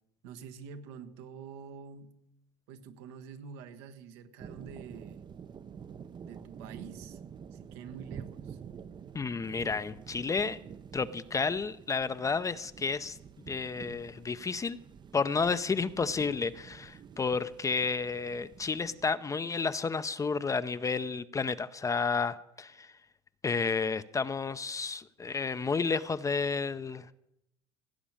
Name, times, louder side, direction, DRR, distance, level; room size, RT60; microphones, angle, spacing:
voice 1, 0.2-2.1 2.7-5.2 6.2-7.2 7.5-8.6, right 6 dB, 80° right, 8 dB, 1.4 m, -47 dB
sound 1, 4.4-19.2, right 7 dB, 35° right, 0.6 m, -48 dB
voice 2, 9.1-10.6 10.9-13.2 13.5-14.8 15.1-22.9 23.4-27.1, left 4 dB, 25° left, 12 dB, 0.6 m, -31 dB
16.5 x 6.0 x 8.8 m, 0.82 s
hypercardioid pair, 80°, 14 cm